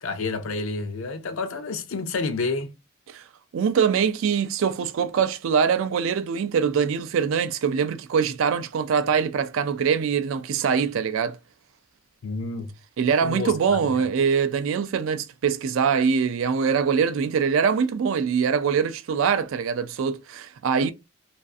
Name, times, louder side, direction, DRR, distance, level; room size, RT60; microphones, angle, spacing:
voice 1, 0.0-2.7 12.2-12.7 13.2-13.9, left 3 dB, 70° left, 0.5 m, -29 dB
voice 2, 3.5-11.4 13.0-20.9, right 6 dB, 65° right, 0.3 m, -23 dB
2.4 x 2.4 x 2.4 m
head